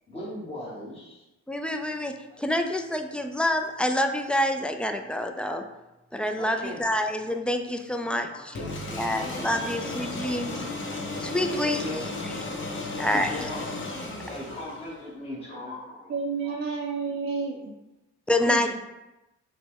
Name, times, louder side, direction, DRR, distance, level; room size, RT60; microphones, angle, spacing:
voice 1, 0.1-1.2 2.3-2.4 6.4-7.3 8.0-8.7 9.3-10.1 11.5-12.3 13.0-14.0 14.2-16.1 16.4-16.6, left 1 dB, 20° left, -7 dB, 1.1 m, -39 dB
voice 2, 1.5-5.6 6.1-8.3 9.0-10.6 11.2-11.8 13.0-13.3 18.3-18.7, left 1 dB, 5° left, 5 dB, 0.3 m, -27 dB
sound 1, 8.6-15.1, left 2 dB, 40° left, 0.9 m, -34 dB
voice 3, 16.1-17.7 18.5-18.7, right 5 dB, 35° right, -1 dB, 0.6 m, -30 dB
5.6 x 2.2 x 3.6 m, 0.99 s
cardioid pair, 90°, 30 cm